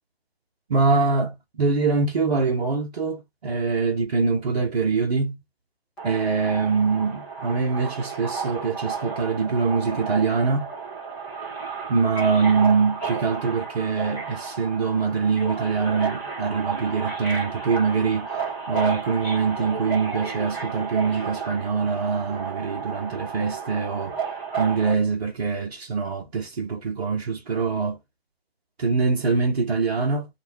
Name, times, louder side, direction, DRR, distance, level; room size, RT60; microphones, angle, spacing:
voice 1, 0.7-5.4 6.0-10.7 11.9-18.3 18.7-24.2 24.6-28.0 28.8-30.3, right 4 dB, 40° right, 1.0 m, -24 dB
Subway metro underground, 6.0-24.9, right 5 dB, 5° left, 0.6 m, -32 dB
3.7 x 2.6 x 2.9 m
figure-of-eight pair, 145°, 31 cm